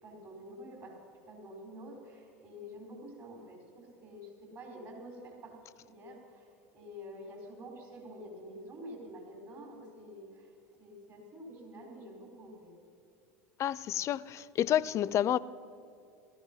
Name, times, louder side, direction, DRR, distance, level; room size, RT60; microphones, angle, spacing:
voice 1, 0.0-10.5 10.8-12.7, equal, 40° right, 4.8 m, -48 dB
voice 2, 13.6-15.4, left 11 dB, 40° left, 0.5 m, -29 dB
17.5 x 14.5 x 5.5 m
hypercardioid pair, 80°, 8 cm